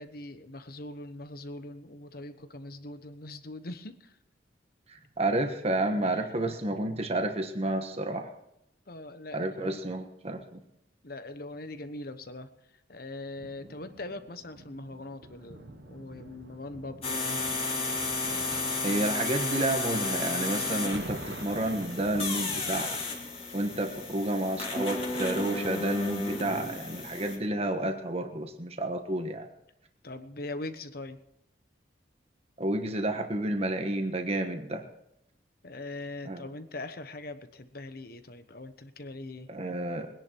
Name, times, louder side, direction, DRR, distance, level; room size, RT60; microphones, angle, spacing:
voice 1, 0.0-4.2 6.0-6.2 8.9-9.8 11.0-17.6 30.0-31.2 35.6-39.5, left 2 dB, 55° left, 10 dB, 1.1 m, -41 dB
voice 2, 4.9-8.3 9.3-10.6 18.8-23.0 23.5-29.5 32.6-34.8 36.2-36.4 39.5-40.1, right 1 dB, 35° right, 4 dB, 1.3 m, -30 dB
sound 1, 13.4-26.2 26.8-27.0, right 1 dB, 70° right, 1.4 m, -48 dB
sound 2, 17.0-27.4, left 3 dB, 30° left, 2.7 m, -33 dB
21.0 x 10.5 x 4.6 m, 0.77 s
head